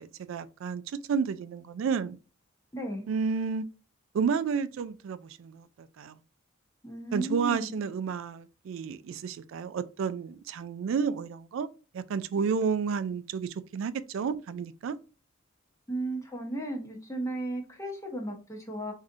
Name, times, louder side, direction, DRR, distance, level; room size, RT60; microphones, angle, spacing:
voice 1, 0.0-2.2 3.1-3.6 4.1-6.2 7.1-11.7 11.9-15.0, right 6 dB, 75° right, 0.3 m, -31 dB
voice 2, 2.7-3.1 6.8-7.8 15.9-18.9, right 1 dB, 15° left, 0.7 m, -35 dB
4.7 x 2.7 x 2.4 m
head